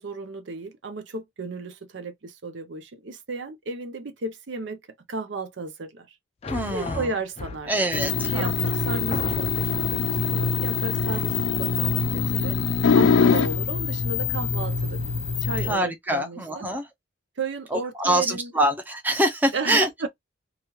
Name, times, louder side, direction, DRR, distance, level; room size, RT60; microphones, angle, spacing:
voice 1, 0.0-4.8 5.1-6.2 6.7-7.7 8.2-12.6 13.0-15.0 15.4-16.6 17.4-18.5 19.5-20.1, right 3 dB, 65° right, 0.6 m, -34 dB
sound 1, 6.4-7.9 8.6-8.7 9.1-9.9, left 3 dB, 30° left, 0.4 m, -33 dB
voice 2, 6.5-7.1 7.7-8.8 11.1-11.5 15.6-16.8 17.7-20.1, right 1 dB, 10° right, 0.7 m, -25 dB
sound 2, 7.9-15.7, left 5 dB, 85° left, 0.5 m, -24 dB
3.0 x 2.4 x 2.9 m
head